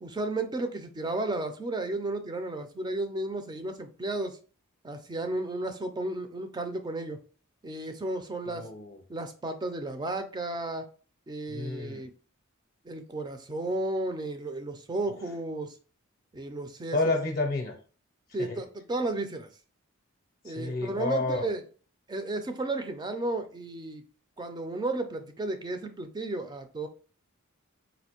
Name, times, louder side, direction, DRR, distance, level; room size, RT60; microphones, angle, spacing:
voice 1, 0.0-4.4 4.8-7.2 7.6-8.7 9.1-10.8 11.3-12.1 12.8-15.7 16.3-17.0 18.3-19.5 20.4-21.6 22.1-24.0 24.4-26.9, right 2 dB, 20° right, 7 dB, 0.4 m, -33 dB
voice 2, 8.4-9.0 11.5-12.0 16.9-17.7 18.4-18.6 20.5-21.5, left 2 dB, 40° left, 2 dB, 0.6 m, -30 dB
4.1 x 2.5 x 2.9 m, 0.40 s
head